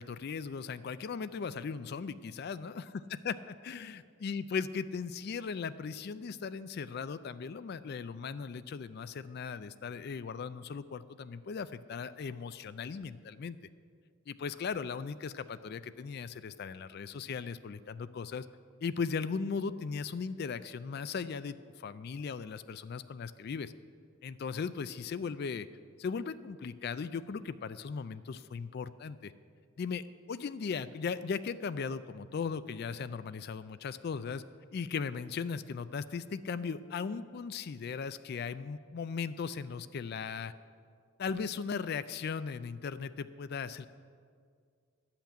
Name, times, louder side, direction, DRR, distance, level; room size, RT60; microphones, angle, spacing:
voice 1, 0.0-2.9 3.3-3.4 3.6-13.6 14.3-18.5 18.8-23.7 24.2-25.7 26.0-29.3 29.8-34.4 34.7-40.5 41.2-43.9, left 5 dB, 50° left, 14 dB, 0.3 m, -38 dB
12.0 x 5.8 x 8.6 m, 2.1 s
head